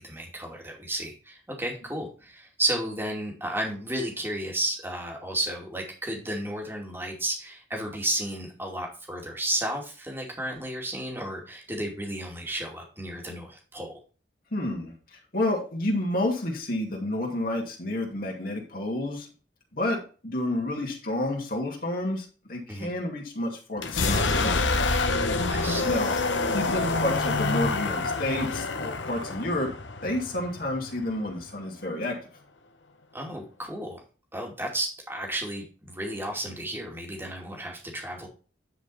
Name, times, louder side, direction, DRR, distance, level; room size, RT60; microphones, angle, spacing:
voice 1, 0.0-14.0 22.7-22.9 25.5-26.0 33.1-34.0 34.3-38.3, right 1 dB, 15° right, 0 dB, 2.5 m, -33 dB
voice 2, 14.5-19.3 19.7-24.7 25.8-26.2 26.5-29.7 30.0-32.2, left 1 dB, 50° left, -1 dB, 2.4 m, -30 dB
sound 1, 23.8-31.5, left 3 dB, 90° left, 1.1 m, -27 dB
10.0 x 5.0 x 4.1 m, 0.36 s
head